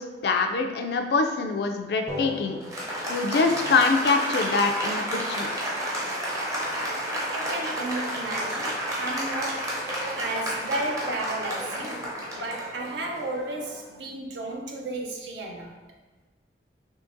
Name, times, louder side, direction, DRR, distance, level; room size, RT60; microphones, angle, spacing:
voice 1, 0.0-2.6 3.1-5.5, left 4 dB, 65° left, 5 dB, 0.4 m, -24 dB
Applause, 2.1-14.0, equal, 20° right, 0.5 m, -31 dB
voice 2, 7.3-9.8 10.2-15.7, right 2 dB, 90° right, 1 dB, 0.6 m, -33 dB
3.7 x 2.8 x 2.6 m, 1.2 s
head